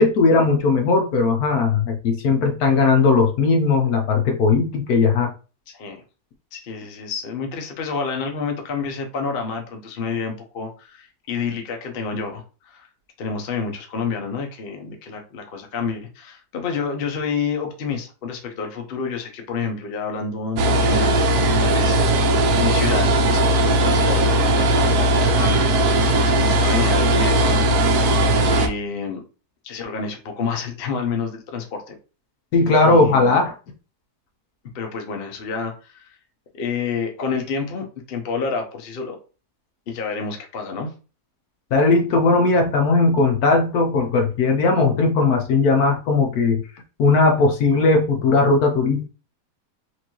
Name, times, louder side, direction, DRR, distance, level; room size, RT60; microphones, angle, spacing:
voice 1, 0.0-5.3 32.5-33.5 41.7-46.6 47.0-49.1, left 3 dB, 70° left, 3 dB, 1.2 m, -18 dB
voice 2, 5.7-6.0 6.5-12.9 13.2-21.3 21.6-28.1 28.5-29.2 29.6-31.9 32.8-33.4 34.7-36.2 36.5-39.2 39.9-40.9, left 5 dB, 50° left, 3 dB, 0.7 m, -29 dB
sound 1, 20.6-28.7, right 1 dB, 75° right, 1.1 m, -18 dB
4.4 x 2.6 x 2.9 m, 0.34 s
omnidirectional pair, 1.7 m